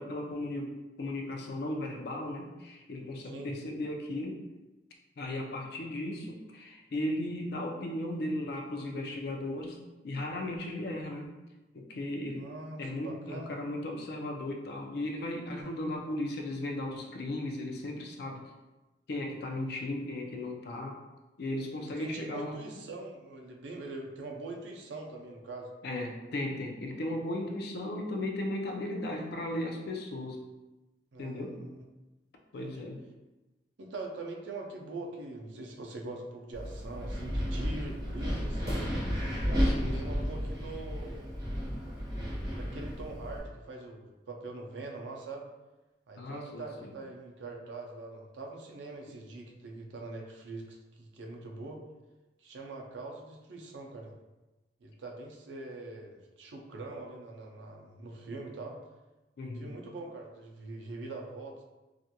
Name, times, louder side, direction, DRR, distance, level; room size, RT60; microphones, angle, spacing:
voice 1, 0.0-4.4 5.2-9.8 10.0-11.3 11.7-12.5 12.8-18.4 19.1-21.0 21.4-22.6 25.8-30.4 31.2-31.6 32.5-33.0 39.6-40.2 46.2-46.9 59.4-59.7, left 1 dB, 60° left, 1 dB, 0.4 m, -36 dB
voice 2, 12.4-13.5 21.8-25.7 31.1-31.8 32.5-32.8 33.8-38.9 39.9-41.2 42.5-45.5 46.1-51.8 52.4-54.1 54.8-58.8 59.5-61.6, right 2 dB, 85° right, 1 dB, 0.4 m, -43 dB
Wind, 36.5-43.4, equal, 20° right, 0.7 m, -32 dB
2.4 x 2.2 x 2.8 m, 1.1 s
head